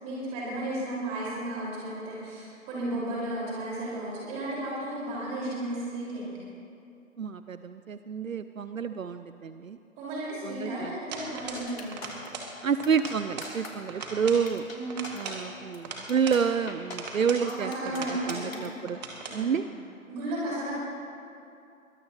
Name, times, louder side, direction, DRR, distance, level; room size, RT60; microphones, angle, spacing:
voice 1, 0.0-6.3 10.0-12.0 14.7-14.9 17.4-18.7 19.2-19.6 20.1-20.7, right 1 dB, 15° right, -6 dB, 5.1 m, -34 dB
voice 2, 7.2-9.8 10.4-11.0 12.6-14.7 15.1-17.7 18.0-19.0 19.3-19.6, right 6 dB, 70° right, 11 dB, 0.7 m, -29 dB
sound 1, 11.1-11.7 11.9-12.5 12.8-13.6 13.9-14.5 14.9-16.4 16.9-17.5 17.9-18.5 18.9-19.4, right 4 dB, 30° right, 2.1 m, -39 dB
sound 2, 11.6-12.3 12.8-13.1 13.4-13.7 14.0-14.1 14.5-14.8 15.0-15.3 15.7-15.8 16.1-16.4 16.7-17.0 17.5-18.7, left 3 dB, 70° left, 3.5 m, -42 dB
22.5 x 20.0 x 3.1 m, 2.6 s
figure-of-eight pair, 145°, 42 cm